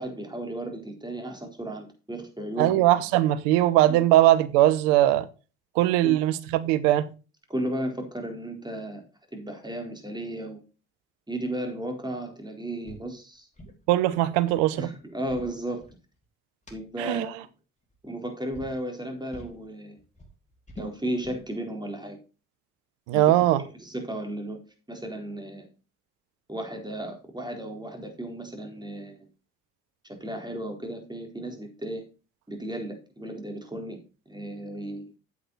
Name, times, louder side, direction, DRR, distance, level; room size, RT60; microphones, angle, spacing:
voice 1, 0.0-2.9 3.9-4.0 6.0-6.2 7.5-9.0 9.3-10.6 11.3-13.5 14.8-15.9 16.7-17.3 18.0-20.0 20.8-22.2 23.1-23.4 23.7-24.6 24.9-25.7 26.5-29.3 30.0-32.0 32.5-34.0 34.3-35.1, right 1 dB, 10° right, 4.1 m, -34 dB
voice 2, 2.6-5.3 5.7-7.1 13.9-14.9 17.0-17.3 23.1-23.6, right 14 dB, 85° right, 0.9 m, -20 dB
sound 1, 12.8-13.1 13.4-13.9 15.0-16.2 16.7-16.8 17.8-18.2 18.5-18.8 19.3-19.6 20.0-21.5, equal, 15° left, 4.7 m, -45 dB
8.6 x 8.3 x 4.1 m
hypercardioid pair, 50°, 40 cm